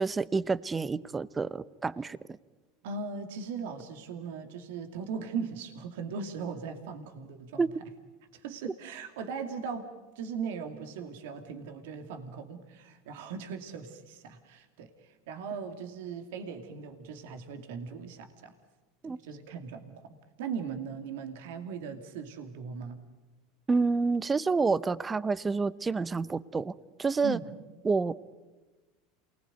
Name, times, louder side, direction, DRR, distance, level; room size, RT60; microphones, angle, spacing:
voice 1, 0.0-2.2 7.6-7.7 19.0-19.2 23.7-26.7 27.0-27.4 27.8-28.1, right 4 dB, 20° right, 18 dB, 0.9 m, -28 dB
voice 2, 2.8-7.6 8.3-18.5 19.0-23.0 27.2-27.4, right 5 dB, 75° right, 7 dB, 2.5 m, -39 dB
28.5 x 20.5 x 9.4 m, 1.2 s
hypercardioid pair, 90°, 0 cm